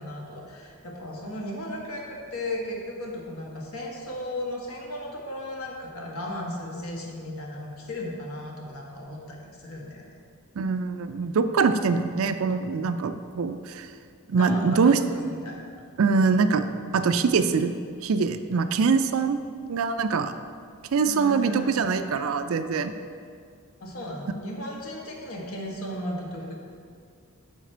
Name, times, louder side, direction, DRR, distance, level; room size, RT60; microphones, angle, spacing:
voice 1, 0.0-10.1 14.4-15.7 21.0-21.9 23.8-26.6, left 1 dB, 75° left, -1 dB, 1.3 m, -35 dB
voice 2, 10.6-13.9 14.3-15.0 16.0-16.7 16.9-17.7 18.0-19.4 19.7-20.3 20.9-22.9, right 5 dB, 65° right, 10 dB, 0.4 m, -23 dB
7.2 x 5.1 x 4.5 m, 2.2 s
head